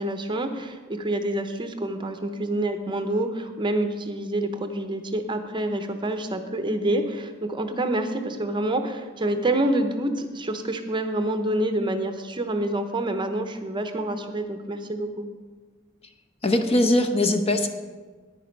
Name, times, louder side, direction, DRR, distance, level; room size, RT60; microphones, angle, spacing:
voice 1, 0.0-15.3, right 1 dB, 25° right, 7 dB, 0.7 m, -27 dB
voice 2, 16.4-17.7, left 1 dB, 30° left, 5 dB, 0.9 m, -21 dB
10.5 x 9.9 x 5.2 m, 1.4 s
head